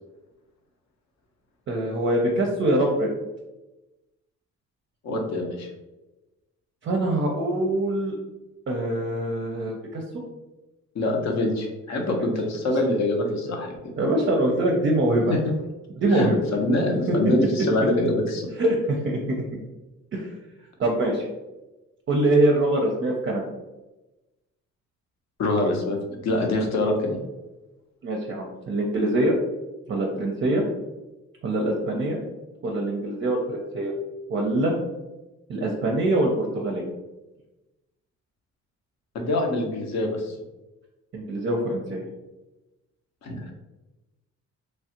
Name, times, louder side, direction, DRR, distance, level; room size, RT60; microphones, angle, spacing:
voice 1, 1.7-3.1 6.8-8.2 8.7-10.0 14.0-15.3 16.0-16.4 17.1-17.2 17.4-17.5 18.6-19.4 20.1-20.3 20.8-21.3 22.1-23.4 28.0-29.4 29.9-30.6 31.4-32.2 32.6-33.9 34.3-34.7 35.5-36.9 41.1-42.0, right 1 dB, 40° right, 0 dB, 0.5 m, -24 dB
voice 2, 5.0-5.7 10.9-13.9 15.3-15.4 16.1-18.5 25.4-27.2 39.1-40.3 43.2-43.5, left 1 dB, 60° left, 2 dB, 0.7 m, -25 dB
3.1 x 2.4 x 2.8 m, 1.1 s
cardioid pair, 90°, 30 cm